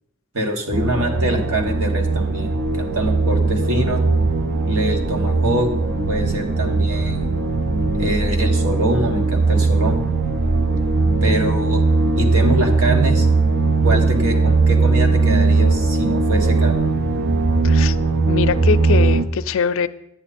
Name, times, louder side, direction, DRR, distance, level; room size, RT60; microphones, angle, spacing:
voice 1, 0.3-4.0 4.6-5.7 6.1-7.3 8.0-10.1 11.2-11.8 12.2-13.3 13.8-16.9, right 1 dB, 75° right, 3 dB, 1.6 m, -24 dB
sound 1, 0.7-19.3, right 3 dB, 55° right, 0.7 m, -19 dB
voice 2, 17.6-18.0 18.3-19.9, left 6 dB, 65° left, 14 dB, 0.4 m, -22 dB
11.0 x 8.8 x 4.2 m, 0.82 s
head